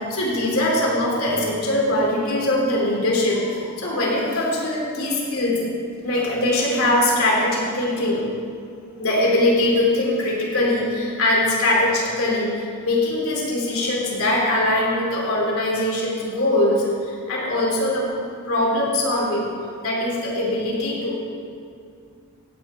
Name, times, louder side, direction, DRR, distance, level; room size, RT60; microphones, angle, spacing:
voice 1, 0.1-5.7 6.0-8.2 9.0-18.1 18.5-19.5 19.8-21.2, left 1 dB, 75° left, -3 dB, 3.4 m, -22 dB
15.5 x 9.1 x 4.5 m, 2.3 s
head